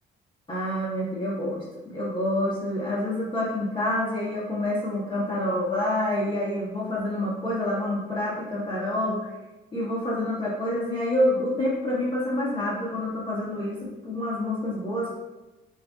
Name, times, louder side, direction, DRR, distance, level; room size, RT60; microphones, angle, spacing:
voice 1, 0.5-9.3 9.7-15.1, left 1 dB, 25° left, -7 dB, 1.4 m, -27 dB
7.6 x 2.7 x 2.4 m, 1.1 s
cardioid pair, 90°, 20 cm